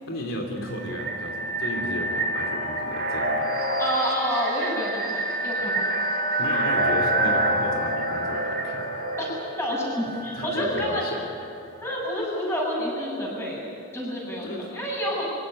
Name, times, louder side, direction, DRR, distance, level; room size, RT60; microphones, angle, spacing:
voice 1, 0.1-3.5 6.4-8.9 10.0-11.2 14.4-14.7, left 1 dB, 70° left, 1 dB, 2.9 m, -34 dB
sound 1, 0.6-11.4, right 1 dB, 50° right, 3.8 m, -27 dB
voice 2, 3.8-5.9 9.2-9.3 9.6-11.0 11.8-13.6 13.9-15.3, equal, 10° left, -3 dB, 7.0 m, -28 dB
23.5 x 17.0 x 9.9 m, 2.6 s
head